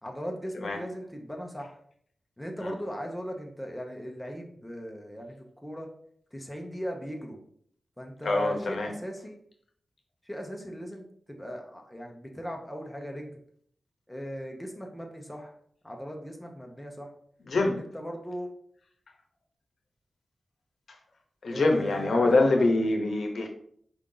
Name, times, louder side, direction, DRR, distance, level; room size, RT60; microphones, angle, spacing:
voice 1, 0.0-1.8 2.4-5.9 6.3-7.4 8.0-9.4 10.2-13.4 14.1-15.5 15.8-17.1 17.7-18.5 21.5-22.7, equal, 5° left, 1 dB, 0.7 m, -38 dB
voice 2, 8.2-8.9 17.4-17.8 21.4-23.5, left 2 dB, 80° left, 2 dB, 0.7 m, -24 dB
4.7 x 2.7 x 3.7 m, 0.64 s
wide cardioid pair, 110°, 0 cm